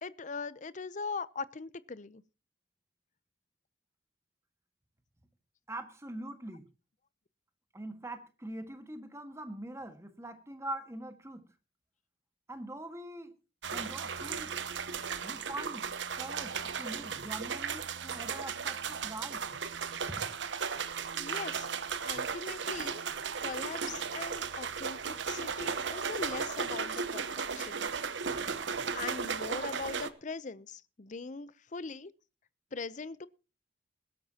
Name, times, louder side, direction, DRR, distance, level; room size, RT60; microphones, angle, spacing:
voice 1, 0.0-2.2 21.1-21.7 22.0-23.0 23.4-27.9 28.3-28.6 28.9-32.1 32.7-33.3, left 4 dB, 45° left, 0.6 m, -41 dB
voice 2, 5.7-6.7 7.7-11.5 12.5-13.3 13.7-14.6 15.2-15.9 16.1-19.4 20.1-20.2, right 1 dB, 15° right, 1.7 m, -43 dB
sound 1, 13.6-30.1, right 6 dB, 85° right, 1.0 m, -36 dB
21.0 x 12.5 x 2.9 m
head